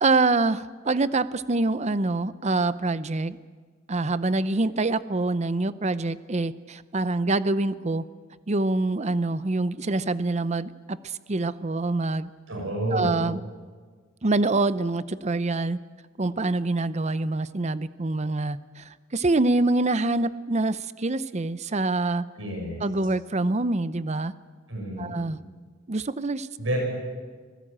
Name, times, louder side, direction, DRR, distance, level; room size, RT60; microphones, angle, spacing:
voice 1, 0.0-3.4 3.9-8.0 8.5-11.0 11.3-12.3 12.9-13.4 14.2-15.8 16.2-18.8 19.1-22.2 22.8-24.3 25.0-25.4 25.9-26.5, right 2 dB, 35° right, 15 dB, 0.7 m, -25 dB
voice 2, 12.5-13.2 22.4-22.8 24.7-25.2 26.6-26.8, right 1 dB, 75° right, 1 dB, 7.0 m, -29 dB
26.0 x 18.0 x 8.8 m, 1.5 s
head